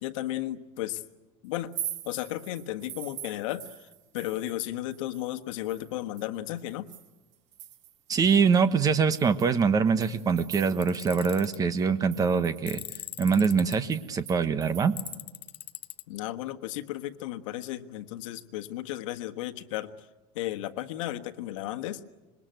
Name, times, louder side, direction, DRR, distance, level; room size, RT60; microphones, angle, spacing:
voice 1, 0.0-1.0 1.4-1.7 2.0-3.9 4.1-6.9 16.1-19.9 20.3-22.0, left 14 dB, 75° left, 8 dB, 1.5 m, -34 dB
sound 1, 1.6-4.6 4.9-8.1 8.5-8.6 9.1-11.1 11.3-11.4 11.8-15.2, right 11 dB, 45° right, 1.5 m, -43 dB
voice 2, 8.1-12.8 13.2-15.0, right 5 dB, 20° right, 12 dB, 1.2 m, -24 dB
Tools, 10.8-11.6 12.7-13.8 15.0-16.0, left 13 dB, 35° left, 0.8 m, -40 dB
26.0 x 22.0 x 9.2 m, 1.1 s
supercardioid pair, 150°, 17 cm